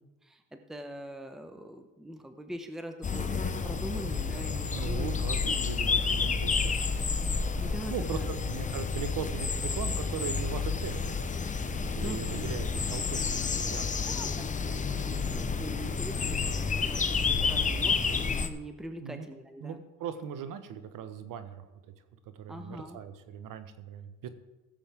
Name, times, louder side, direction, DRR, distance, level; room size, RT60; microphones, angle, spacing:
voice 1, 0.2-5.1 5.5-5.6 5.9-6.4 7.6-8.3 12.0-12.4 14.1-19.8 22.5-23.0, equal, ahead, 7 dB, 0.9 m, -43 dB
sound 1, 3.0-18.5, left 5 dB, 20° left, 0.8 m, -30 dB
voice 2, 4.7-7.1 7.6-11.5 11.9-13.8 19.0-19.3 19.6-21.9 22.3-24.3, right 8 dB, 60° right, 11 dB, 1.1 m, -39 dB
16.0 x 7.3 x 3.5 m, 1.2 s
supercardioid pair, 90°, 37 cm